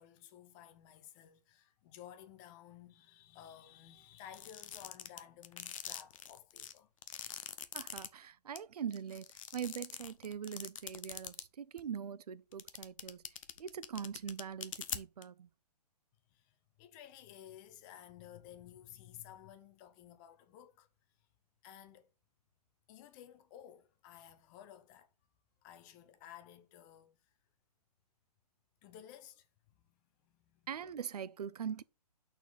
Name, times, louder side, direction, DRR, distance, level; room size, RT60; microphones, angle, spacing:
voice 1, 0.0-6.9 16.3-20.9 21.6-22.1 22.9-25.1 25.6-27.2 28.8-29.5 29.7-30.0 30.2-30.7, left 10 dB, 30° left, 1.0 m, -55 dB
sound 1, 4.3-8.1 8.6-8.7 8.9-11.4 11.8-11.9 12.5-15.2, left 9 dB, 55° left, 0.8 m, -43 dB
voice 2, 7.7-13.2 13.6-15.5 30.7-31.8, right 8 dB, 70° right, 0.5 m, -42 dB
6.0 x 4.4 x 5.1 m
figure-of-eight pair, 120°, 21 cm